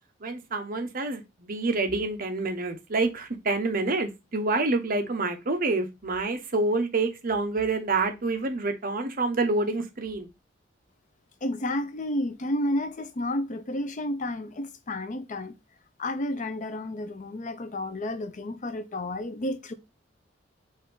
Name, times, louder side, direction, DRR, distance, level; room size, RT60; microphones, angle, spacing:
voice 1, 0.2-10.3, right 3 dB, 50° right, 0.9 m, -27 dB
voice 2, 11.4-15.6 16.0-19.7, left 1 dB, 40° left, 0.5 m, -31 dB
5.2 x 2.6 x 3.7 m
head